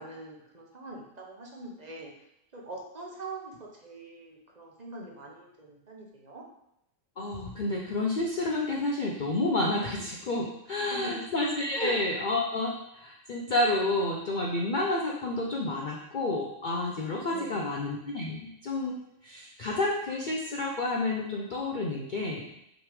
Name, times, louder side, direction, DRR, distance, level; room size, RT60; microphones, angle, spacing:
voice 1, 0.0-2.1 2.5-6.4 10.7-11.2 11.7-11.9 17.3-17.7, right 2 dB, 35° right, -1 dB, 1.0 m, -42 dB
voice 2, 7.2-22.4, left 2 dB, 50° left, -1 dB, 0.7 m, -30 dB
6.1 x 3.4 x 4.9 m, 0.80 s
omnidirectional pair, 1.3 m